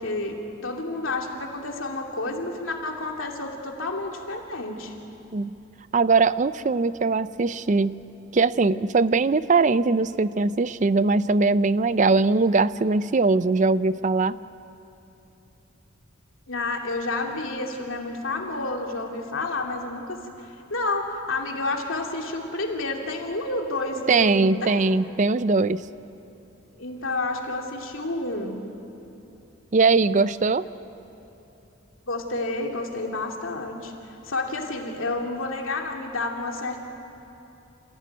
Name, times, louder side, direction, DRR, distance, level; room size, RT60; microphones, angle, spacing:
voice 1, 0.0-4.9 16.5-20.2 20.4-25.0 26.8-28.6 32.1-33.9 34.2-36.8, left 2 dB, 85° left, 1 dB, 2.7 m, -30 dB
voice 2, 5.9-8.0 8.3-14.4 24.1-25.8 29.7-30.6, right 3 dB, 40° right, 16 dB, 0.5 m, -21 dB
28.0 x 16.0 x 9.4 m, 2.9 s
head